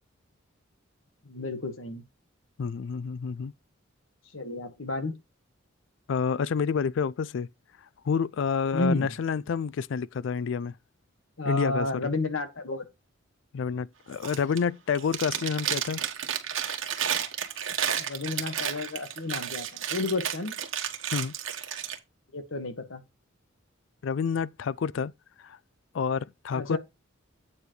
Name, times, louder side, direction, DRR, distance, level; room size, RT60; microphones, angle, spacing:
voice 1, 1.2-2.0 4.3-5.1 8.7-9.1 11.4-12.9 18.0-20.6 22.3-23.0 26.5-26.8, left 2 dB, 80° left, 1.6 m, -31 dB
voice 2, 2.6-3.5 6.1-7.5 8.0-10.7 11.5-11.9 13.5-16.0 21.1-21.3 24.0-25.1 25.4-25.6 25.9-26.8, left 6 dB, 65° left, 0.3 m, -28 dB
Chewing mastication, 14.1-14.6 14.9-22.0, right 9 dB, 70° right, 1.4 m, -32 dB
8.6 x 6.8 x 3.1 m
head